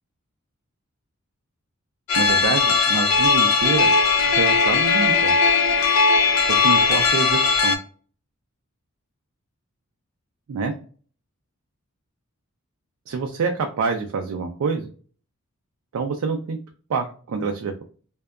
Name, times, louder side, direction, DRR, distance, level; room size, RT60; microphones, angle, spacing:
sound 1, 2.1-7.8, left 4 dB, 65° left, 0.4 m, -18 dB
voice 1, 2.1-3.9 4.3-5.4 6.5-7.8 10.5-10.7 13.1-14.9 15.9-16.6 16.9-17.8, right 5 dB, 65° right, 4 dB, 0.3 m, -26 dB
2.6 x 2.2 x 2.2 m, 0.41 s
head